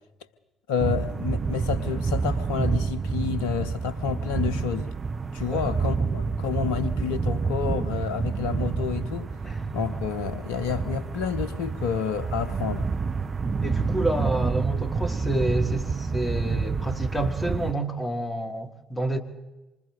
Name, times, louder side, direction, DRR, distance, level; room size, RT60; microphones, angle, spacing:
voice 1, 0.7-4.9 5.3-9.3 9.7-12.9, left 7 dB, 70° left, 0.9 m, -29 dB
sound 1, 0.8-17.7, right 5 dB, 35° right, 0.9 m, -28 dB
voice 2, 13.6-19.2, right 1 dB, 15° left, 2.6 m, -29 dB
27.0 x 25.0 x 4.0 m
figure-of-eight pair, 45°, 0 cm